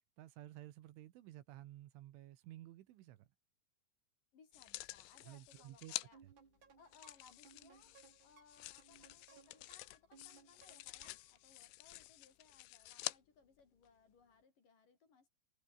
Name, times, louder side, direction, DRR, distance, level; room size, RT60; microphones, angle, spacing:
voice 1, 0.2-3.3 5.2-6.0 6.2-6.3, right 14 dB, 75° right, 3.7 m, -54 dB
voice 2, 4.3-6.2 6.8-15.3, left 5 dB, 45° left, 5.0 m, -66 dB
sound 1, 4.5-6.1 6.9-13.2 13.8-13.9, left 19 dB, 80° left, 3.2 m, -49 dB
sound 2, 6.1-11.4, right 6 dB, 45° right, 1.7 m, -65 dB
omnidirectional pair, 5.9 m